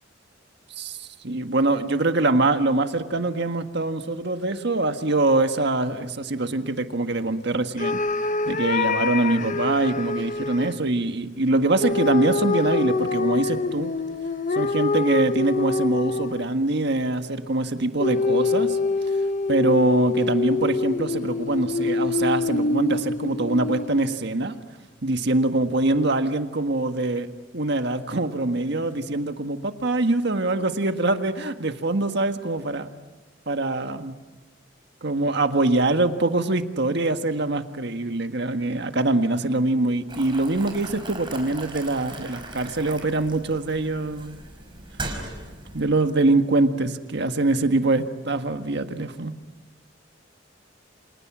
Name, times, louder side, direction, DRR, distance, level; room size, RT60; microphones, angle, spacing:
voice 1, 0.8-8.0 8.4-13.9 14.5-18.8 19.5-24.6 25.0-27.3 27.5-32.9 33.5-34.2 35.0-44.4 45.7-49.3, right 2 dB, 65° right, 7 dB, 1.6 m, -24 dB
sound 1, 7.8-10.8 11.8-16.6 18.0-24.1, left 3 dB, 45° left, 0.9 m, -25 dB
Boiling, 40.1-45.9, right 2 dB, 25° right, 5.0 m, -38 dB
29.0 x 28.0 x 6.2 m, 1.1 s
head